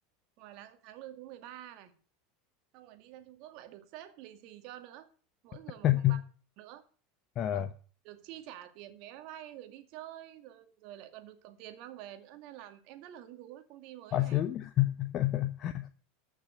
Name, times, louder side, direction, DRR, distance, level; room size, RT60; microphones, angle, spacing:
voice 1, 0.4-1.9 2.7-5.1 5.4-6.2 6.6-6.8 7.5-7.7 8.0-14.4, right 12 dB, 55° right, 2.0 m, -48 dB
voice 2, 5.8-6.2 7.4-7.7 14.1-15.9, left 14 dB, 45° left, 0.9 m, -28 dB
13.5 x 6.2 x 9.4 m
hypercardioid pair, 85°, 0 cm